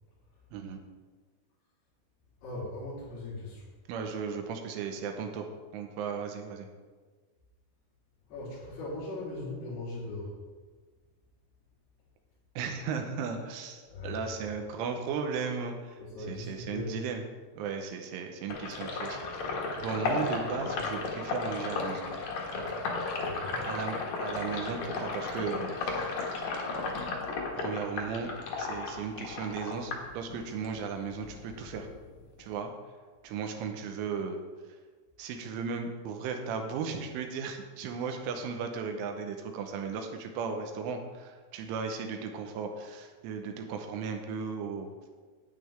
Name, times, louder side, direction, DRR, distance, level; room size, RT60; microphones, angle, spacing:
voice 1, 0.5-0.8 3.9-6.7 12.6-16.0 16.3-17.2 17.6-19.2 19.8-22.1 23.6-26.5 27.6-28.3 28.6-31.9 32.4-32.7 33.2-34.4 35.2-44.9, right 6 dB, 90° right, 4 dB, 3.4 m, -36 dB
voice 2, 2.4-3.7 8.3-10.3 13.9-14.2 16.0-16.9 23.2-23.6, left 2 dB, 60° left, -10 dB, 4.4 m, -39 dB
Sink (filling or washing), 18.5-30.8 31.1-32.5, left 3 dB, 90° left, 1.6 m, -34 dB
11.0 x 9.5 x 3.4 m, 1.4 s
omnidirectional pair, 5.6 m